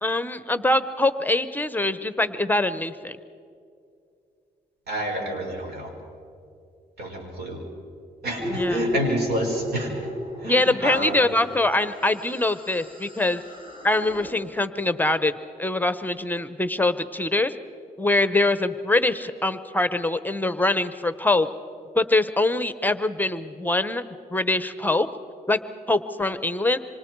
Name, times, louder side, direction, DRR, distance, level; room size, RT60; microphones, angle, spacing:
voice 1, 0.0-3.2 8.5-8.8 10.4-13.4 13.8-15.3 15.6-17.5 18.0-21.5 21.9-24.0 24.3-25.1 25.5-25.6 25.9-26.8, left 2 dB, 10° left, 12 dB, 0.9 m, -23 dB
voice 2, 4.9-5.9 7.0-7.6 8.2-9.9 10.4-11.2, equal, 85° right, 1 dB, 5.4 m, -29 dB
sound 1, 8.4-14.3, left 1 dB, 35° right, 4.4 m, -33 dB
27.0 x 25.5 x 4.7 m, 2.4 s
cardioid pair, 85°, 16 cm